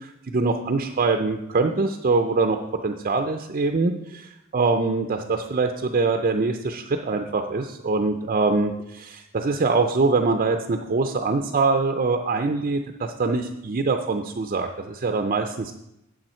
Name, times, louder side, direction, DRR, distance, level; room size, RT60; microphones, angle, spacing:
voice 1, 0.0-2.6 2.8-15.7, right 3 dB, 40° right, 4 dB, 0.5 m, -24 dB
9.0 x 7.5 x 4.4 m, 0.87 s
head